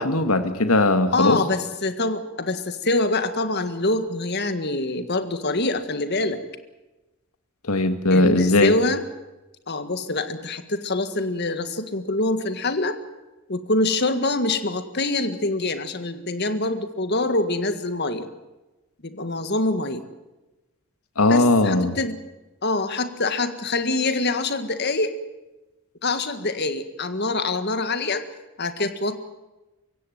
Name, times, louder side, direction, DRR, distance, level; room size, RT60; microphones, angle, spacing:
voice 1, 0.0-1.4 7.7-8.7 21.2-22.0, left 2 dB, 80° left, 9 dB, 2.0 m, -19 dB
voice 2, 1.1-6.4 8.1-9.0 9.7-13.0 13.5-18.3 19.0-20.0 21.3-22.2 22.6-25.1 26.0-28.3 28.6-29.2, left 2 dB, 50° left, 10 dB, 1.7 m, -25 dB
24.5 x 16.0 x 9.3 m, 1.1 s
head